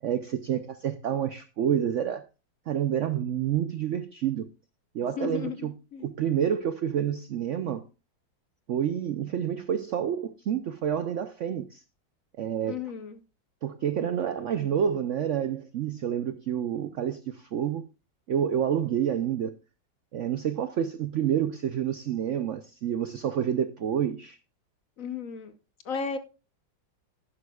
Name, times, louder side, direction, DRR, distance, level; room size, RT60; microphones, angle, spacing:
voice 1, 0.0-2.3 2.7-4.5 4.9-5.7 6.0-7.8 8.7-11.8 12.4-12.8 13.6-17.8 18.3-19.6 20.1-24.4, right 9 dB, 90° right, 0.6 m, -28 dB
voice 2, 5.2-6.1 12.7-13.2 25.0-25.5 25.8-26.2, left 5 dB, 55° left, 1.1 m, -34 dB
11.5 x 11.0 x 2.3 m
omnidirectional pair, 2.0 m